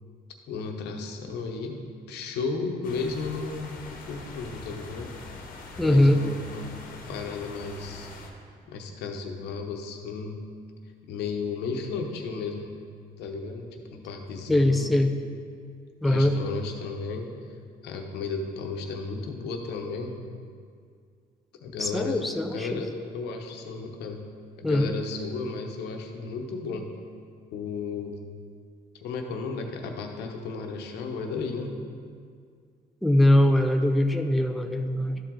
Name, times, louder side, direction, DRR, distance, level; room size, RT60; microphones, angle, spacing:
voice 1, 0.5-1.8 2.1-5.1 5.8-8.1 8.7-10.4 11.1-12.8 13.2-15.0 16.0-17.3 17.8-20.2 21.6-24.3 24.6-27.0 27.5-28.2 29.0-31.7, left 4 dB, 80° left, 3 dB, 0.9 m, -34 dB
sound 1, 2.8-8.3, left 3 dB, 55° left, 1.1 m, -43 dB
voice 2, 5.8-6.2 14.5-15.1 16.0-16.3 21.8-22.8 24.6-24.9 33.0-35.2, left 1 dB, ahead, 5 dB, 0.4 m, -21 dB
12.5 x 4.7 x 3.8 m, 2.1 s
cardioid pair, 110°, 17 cm